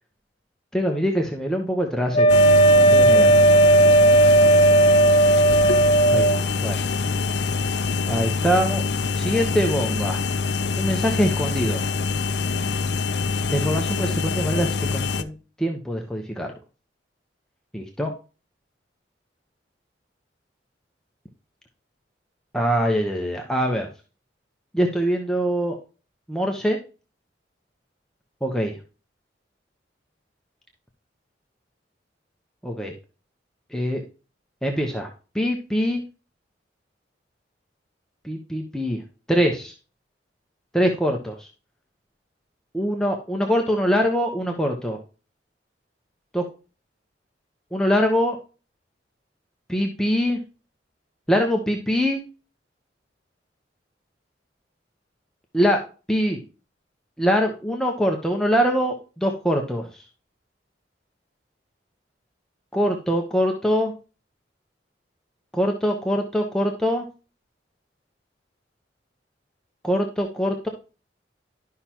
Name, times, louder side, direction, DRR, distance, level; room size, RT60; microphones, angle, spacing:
voice 1, 0.7-2.3 2.9-3.3 6.1-6.8 8.1-8.8 9.1-10.2 10.8-11.8 13.5-16.5 17.7-18.1 22.5-23.9 24.7-25.8 26.3-26.8 28.4-28.8 32.6-32.9 33.7-34.0 34.6-36.0 38.2-39.0 39.3-39.7 40.7-41.5 42.7-45.0 46.3-46.4 47.7-48.4 49.7-50.4 51.3-52.2 55.5-55.8 56.1-56.4 57.2-60.0 62.7-63.9 65.5-67.0 69.8-70.7, equal, 5° left, 1 dB, 1.0 m, -23 dB
Wind instrument woodwind instrument, 2.1-6.4, right 1 dB, 30° left, 0.7 m, -15 dB
sound 1, 2.3-15.2, left 4 dB, 65° left, 0.6 m, -25 dB
12.0 x 5.7 x 3.0 m, 0.34 s
head